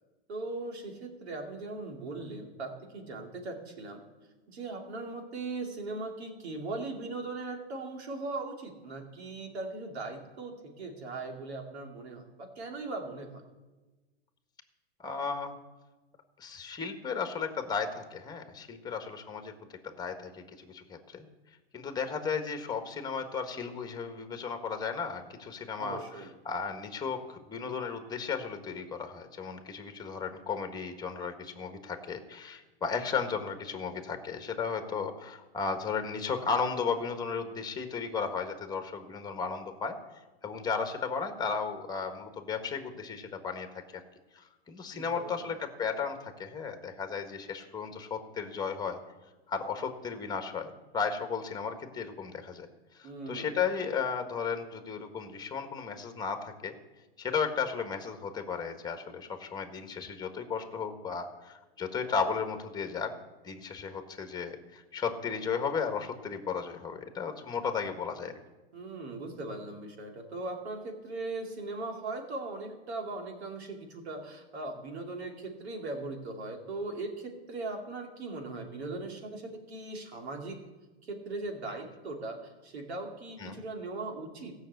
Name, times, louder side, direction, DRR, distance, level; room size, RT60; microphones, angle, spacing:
voice 1, 0.3-4.1 4.5-13.4 25.8-26.3 44.9-45.5 53.0-53.5 68.7-80.7 81.0-84.5, right 3 dB, 80° right, 2 dB, 2.8 m, -39 dB
voice 2, 15.0-15.5 16.4-19.5 19.8-21.2 21.7-26.0 26.4-40.0 40.4-43.8 44.3-49.0 49.5-52.7 52.9-56.7 57.2-63.1 63.4-68.3 83.4-83.6, left 5 dB, 10° left, 6 dB, 1.7 m, -34 dB
16.0 x 6.4 x 8.1 m, 1.2 s
hypercardioid pair, 125°, 32 cm